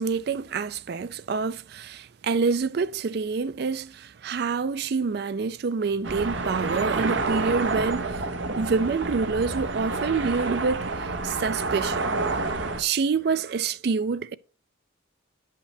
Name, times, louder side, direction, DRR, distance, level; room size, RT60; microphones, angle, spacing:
voice 1, 0.0-8.3 8.6-10.9 11.2-12.1 12.8-14.3, right 5 dB, 55° right, 0.4 m, -27 dB
sound 1, 6.0-12.8, right 3 dB, 70° right, 0.9 m, -28 dB
9.1 x 5.7 x 3.3 m
head